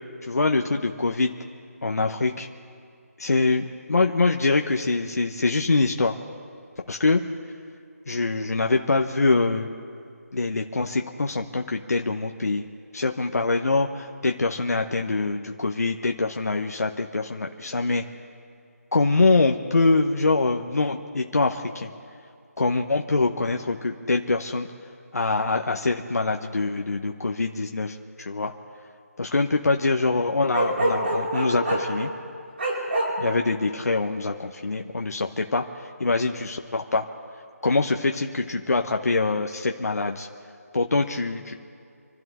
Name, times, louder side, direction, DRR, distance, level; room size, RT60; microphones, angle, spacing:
voice 1, 0.2-1.3 1.8-2.5 3.2-6.1 6.9-7.2 8.1-9.7 10.3-12.7 12.9-18.0 18.9-21.9 22.6-24.7 25.1-28.5 29.2-32.1 33.2-35.6 36.0-37.1 37.6-40.3 40.7-41.5, left 3 dB, 70° left, 3 dB, 1.1 m, -24 dB
Bark, 30.5-31.9 32.6-33.1, right 1 dB, 45° right, 5.1 m, -24 dB
27.0 x 12.5 x 3.7 m, 2.3 s
figure-of-eight pair, 175°, 9 cm